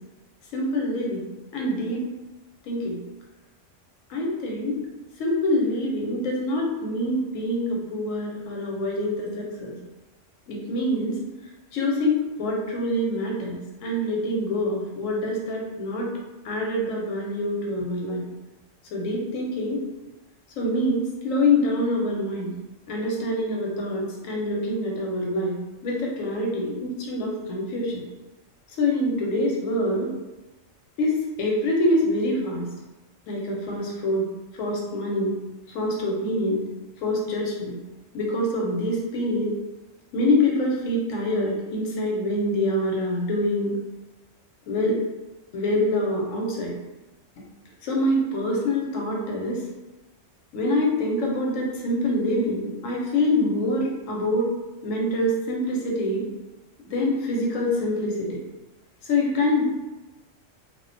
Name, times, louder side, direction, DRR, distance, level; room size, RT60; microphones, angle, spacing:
voice 1, 0.5-1.2 1.5-2.0 2.7-3.0 4.1-4.8 5.2-9.7 10.5-11.2 11.7-16.1 16.4-18.2 18.9-19.8 20.6-22.5 22.9-25.6 25.8-28.0 28.8-30.1 31.0-32.7 33.3-34.2 34.6-35.3 35.7-36.6 37.0-37.7 38.1-39.5 40.1-43.7 44.7-45.0 45.5-46.7 47.8-49.6 50.5-54.5 54.8-56.2 56.9-58.4 59.1-59.6, left 1 dB, 90° left, -2 dB, 1.0 m, -25 dB
2.4 x 2.1 x 2.5 m, 1.1 s
omnidirectional pair, 1.3 m